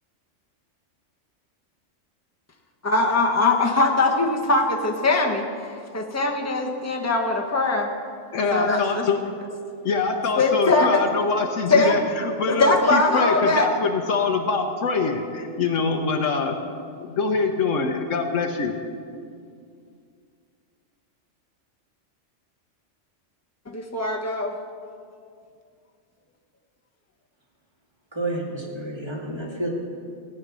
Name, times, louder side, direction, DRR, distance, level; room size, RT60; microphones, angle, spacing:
voice 1, 2.8-7.9 8.5-9.1 10.4-11.0 11.7-12.0 12.5-13.7 23.7-24.5, left 2 dB, 15° left, 0 dB, 1.1 m, -21 dB
voice 2, 8.3-9.2 9.8-16.6 17.0-18.8, left 4 dB, 75° left, 4 dB, 1.3 m, -24 dB
voice 3, 28.1-29.7, right 1 dB, 20° right, -3 dB, 2.5 m, -30 dB
17.0 x 9.3 x 6.3 m, 2.3 s
omnidirectional pair, 1.3 m